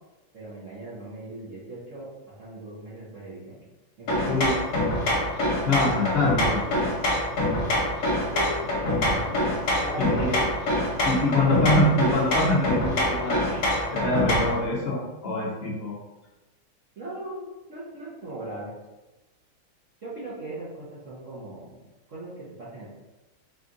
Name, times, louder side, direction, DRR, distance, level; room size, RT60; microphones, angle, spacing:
voice 1, 0.3-3.6 4.0-4.3 8.3-9.3 9.8-10.6 11.4-11.5 17.0-18.7 20.0-21.8 22.1-22.9, right 2 dB, 50° right, -9 dB, 1.1 m, -38 dB
sound 1, 4.1-14.6, left 1 dB, 55° left, 1.4 m, -25 dB
voice 2, 5.6-6.8 10.0-10.4 11.0-13.6 13.9-16.0, left 2 dB, 85° left, -5 dB, 0.5 m, -24 dB
4.4 x 2.5 x 3.8 m, 1.1 s
omnidirectional pair, 2.2 m